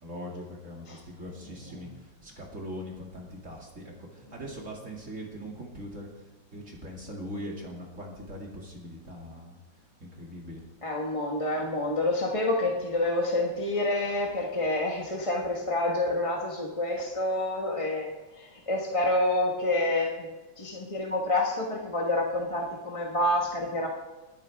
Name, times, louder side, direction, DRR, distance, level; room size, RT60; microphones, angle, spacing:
voice 1, 0.0-6.1 6.5-9.6 10.0-10.6, equal, 40° right, -1 dB, 2.7 m, -41 dB
voice 2, 10.8-20.3 20.6-23.9, left 2 dB, 20° left, -1 dB, 1.2 m, -28 dB
21.5 x 10.5 x 3.5 m, 1.1 s
omnidirectional pair, 2.1 m